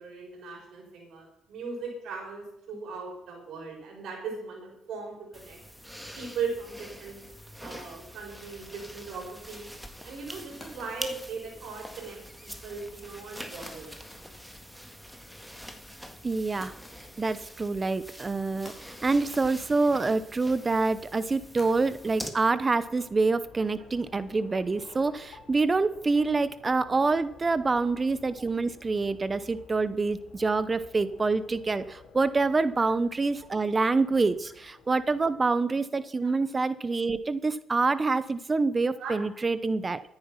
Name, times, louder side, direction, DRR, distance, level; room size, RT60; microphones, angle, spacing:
voice 1, 0.0-5.6 6.2-7.2 7.6-9.7 10.0-14.0 36.2-36.3 39.0-39.1, right 5 dB, 75° right, 0 dB, 5.8 m, -38 dB
sound 1, 5.3-22.3, equal, ahead, 1.8 m, -45 dB
sound 2, 10.6-12.0 13.6-14.4 14.7-15.2 16.6-17.5 17.8-17.9 18.6-20.2 21.6-24.6, left 2 dB, 20° left, 4.7 m, -53 dB
voice 2, 16.2-16.7 17.2-40.0, right 3 dB, 30° right, 15 dB, 0.7 m, -26 dB
sound 3, 22.8-35.4, left 5 dB, 80° left, 3.5 m, -53 dB
13.5 x 9.8 x 5.7 m, 0.82 s
cardioid pair, 90°, 0 cm